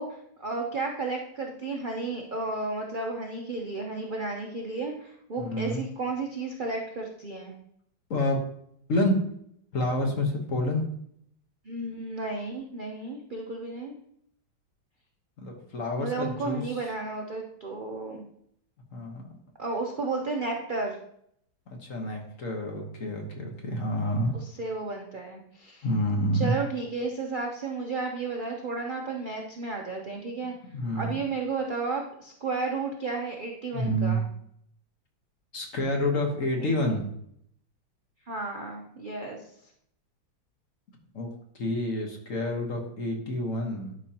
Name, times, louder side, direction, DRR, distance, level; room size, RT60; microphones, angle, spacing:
voice 1, 0.0-7.5 11.6-13.9 16.0-18.3 19.6-21.0 23.8-25.9 26.3-30.5 30.9-34.3 36.6-36.7 38.3-39.4, right 3 dB, 75° right, 0 dB, 0.4 m, -33 dB
voice 2, 5.4-5.8 8.1-8.4 8.9-9.2 9.7-10.8 15.4-16.6 18.9-19.2 21.8-24.3 25.8-26.6 30.7-31.2 33.7-34.2 35.5-37.1 41.1-41.3 41.6-43.9, left 1 dB, 45° left, 2 dB, 1.4 m, -28 dB
11.5 x 5.3 x 2.9 m, 0.70 s
omnidirectional pair, 2.2 m